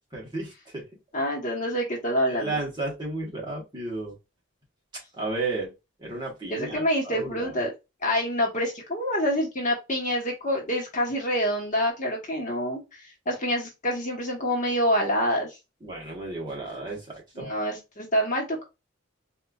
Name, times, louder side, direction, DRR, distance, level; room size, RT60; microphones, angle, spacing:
voice 1, 0.1-0.8 2.3-4.1 5.1-5.7 6.0-7.5 15.8-17.5, right 2 dB, 20° right, 1.2 m, -33 dB
voice 2, 1.1-2.6 6.5-7.7 8.0-15.6 17.3-18.6, equal, 40° left, 1.1 m, -27 dB
4.1 x 2.4 x 2.3 m
head